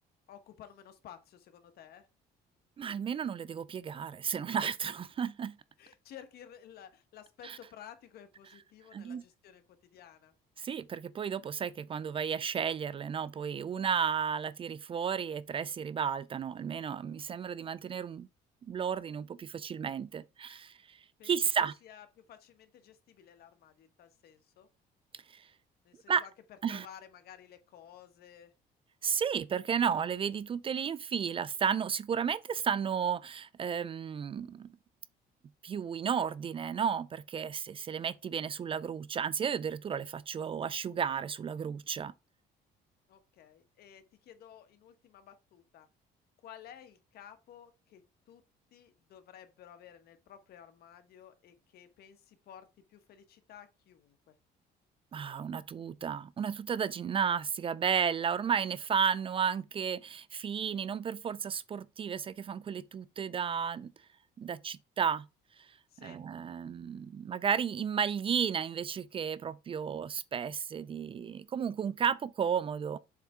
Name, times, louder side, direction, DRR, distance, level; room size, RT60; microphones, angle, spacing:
voice 1, 0.3-2.1 5.8-10.3 21.2-24.7 25.8-26.3 26.7-28.5 43.1-45.9 46.4-48.0 48.3-48.4 48.7-54.3 65.9-66.2, left 9 dB, 65° left, 1.3 m, -54 dB
voice 2, 2.8-5.6 7.4-7.6 8.9-9.2 10.6-18.3 18.7-21.0 21.2-21.7 25.3-25.5 26.1-26.2 26.6-26.9 29.0-34.7 35.6-42.1 55.1-63.9 64.4-65.3 66.0-73.0, right 7 dB, 30° right, 0.3 m, -33 dB
7.4 x 3.5 x 4.3 m
cardioid pair, 110°, 17 cm